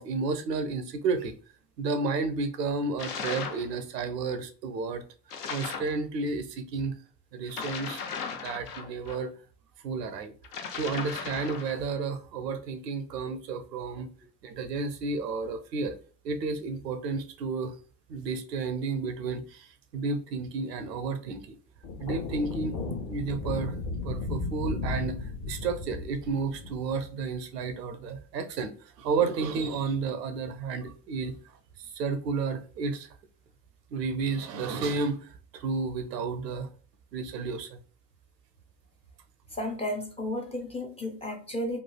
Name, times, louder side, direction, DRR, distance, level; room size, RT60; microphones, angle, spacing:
voice 1, 0.0-1.4 1.8-5.0 5.5-6.9 7.3-8.0 8.4-9.3 9.8-10.3 10.8-14.1 14.4-16.0 16.2-17.8 18.1-21.6 22.0-22.8 23.1-23.8 24.0-31.3 31.8-33.1 33.9-36.7 37.1-37.8, right 4 dB, 80° right, 0.6 m, -32 dB
sound 1, 3.0-3.7 5.3-6.0 7.5-9.2 10.4-11.8, left 6 dB, 70° left, 0.6 m, -36 dB
sound 2, 21.8-27.5, left 3 dB, 40° left, 0.8 m, -35 dB
voice 2, 39.5-41.8, left 1 dB, 15° left, 0.4 m, -33 dB
3.1 x 2.3 x 2.3 m
figure-of-eight pair, 65°, 48 cm